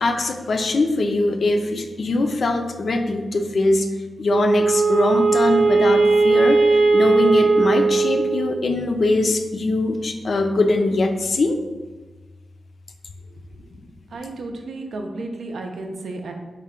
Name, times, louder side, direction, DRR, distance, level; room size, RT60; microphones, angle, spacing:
voice 1, 0.0-3.9 4.2-11.6, left 2 dB, 55° left, 6 dB, 0.4 m, -22 dB
Wind instrument woodwind instrument, 4.3-8.7, right 3 dB, 45° right, 0.6 m, -18 dB
voice 2, 14.1-16.3, right 2 dB, 85° right, 3 dB, 0.4 m, -32 dB
4.3 x 2.2 x 3.6 m, 1.3 s
wide cardioid pair, 105°, 0 cm